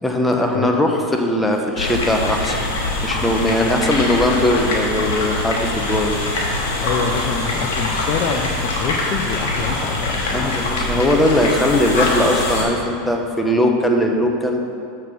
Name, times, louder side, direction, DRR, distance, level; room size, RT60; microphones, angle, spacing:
voice 1, 0.0-2.7 3.0-6.2 10.3-14.6, left 1 dB, 5° left, 2 dB, 0.9 m, -19 dB
sound 1, 1.8-12.6, left 2 dB, 85° left, 1.9 m, -23 dB
voice 2, 6.8-10.6, left 6 dB, 50° left, 2 dB, 0.6 m, -26 dB
6.8 x 6.6 x 6.3 m, 2.4 s
supercardioid pair, 130°, 0 cm